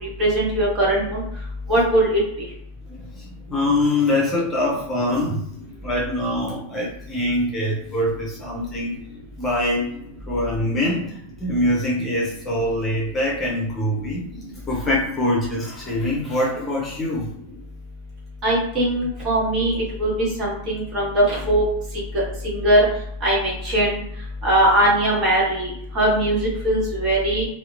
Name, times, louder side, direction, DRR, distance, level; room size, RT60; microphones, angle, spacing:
voice 1, 0.0-1.2 1.7-2.2 18.4-21.6 22.4-22.8 23.2-24.0 24.4-27.5, right 1 dB, 35° right, -5 dB, 1.3 m, -20 dB
voice 2, 2.9-5.5 5.8-8.9 9.4-9.9 10.3-14.3 14.7-17.3, left 1 dB, 20° left, -4 dB, 0.7 m, -24 dB
2.8 x 2.0 x 2.5 m, 0.72 s
figure-of-eight pair, 90°, 0 cm